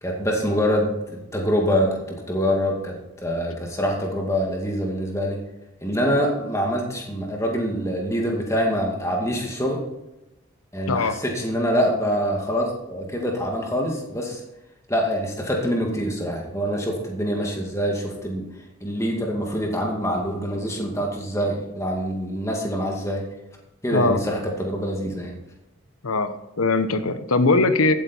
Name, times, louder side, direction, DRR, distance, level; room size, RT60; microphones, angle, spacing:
voice 1, 0.0-2.9 3.2-5.4 5.8-9.8 10.7-14.4 14.9-18.4 18.8-23.2 23.8-25.3, equal, 15° left, 0 dB, 2.3 m, -25 dB
voice 2, 10.9-11.2 23.9-24.2 26.0-27.9, left 3 dB, 90° left, 10 dB, 1.1 m, -21 dB
15.5 x 8.9 x 4.5 m, 0.94 s
head